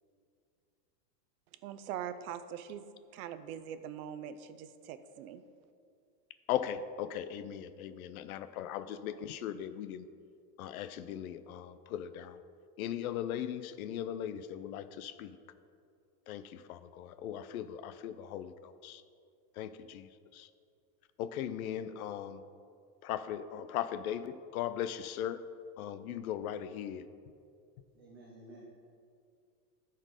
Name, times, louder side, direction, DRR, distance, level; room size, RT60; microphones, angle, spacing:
voice 1, 1.6-2.8 3.1-5.4, right 9 dB, 60° right, 11 dB, 0.6 m, -42 dB
voice 2, 6.5-10.1 10.6-12.4 12.8-15.4 16.3-19.0 19.6-20.5 21.2-22.4 23.0-25.4 25.8-27.0, left 10 dB, 60° left, 13 dB, 0.6 m, -38 dB
voice 3, 27.9-28.6, right 1 dB, 20° right, -4 dB, 0.3 m, -52 dB
13.5 x 4.5 x 4.8 m, 2.4 s
supercardioid pair, 165°, 48 cm